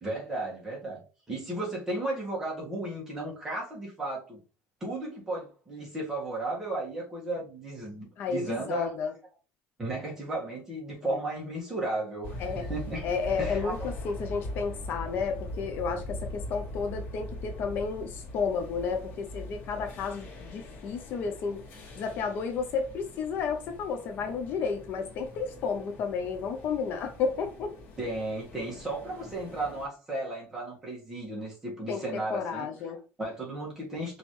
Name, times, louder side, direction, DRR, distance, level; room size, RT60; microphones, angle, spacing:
voice 1, 0.0-4.4 4.8-8.9 9.8-13.1 13.4-13.9 28.0-32.7 33.2-34.2, right 2 dB, 10° right, 1.6 m, -34 dB
voice 2, 8.2-9.1 11.0-11.2 12.4-12.7 13.0-21.6 22.0-27.7 31.9-33.0, left 5 dB, 45° left, 0.6 m, -32 dB
sound 1, 12.2-29.9, left 1 dB, 80° left, 1.8 m, -42 dB
5.3 x 3.1 x 3.1 m
cardioid pair, 180°, 5 cm